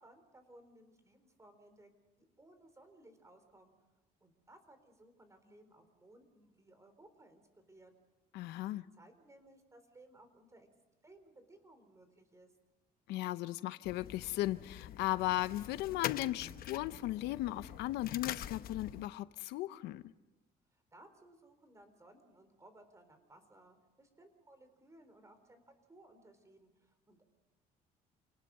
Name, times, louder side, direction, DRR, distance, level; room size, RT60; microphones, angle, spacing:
voice 1, 0.0-1.9 2.2-3.7 4.2-7.4 7.7-7.9 8.7-10.7 11.0-12.5 20.7-27.3, right 1 dB, 20° right, 8 dB, 4.3 m, -61 dB
voice 2, 8.3-8.8 13.1-20.0, left 16 dB, 90° left, 14 dB, 0.7 m, -36 dB
sound 1, 13.8-19.1, left 12 dB, 60° left, 0.9 m, -44 dB
29.0 x 19.0 x 5.5 m, 1.1 s
cardioid pair, 110°, 17 cm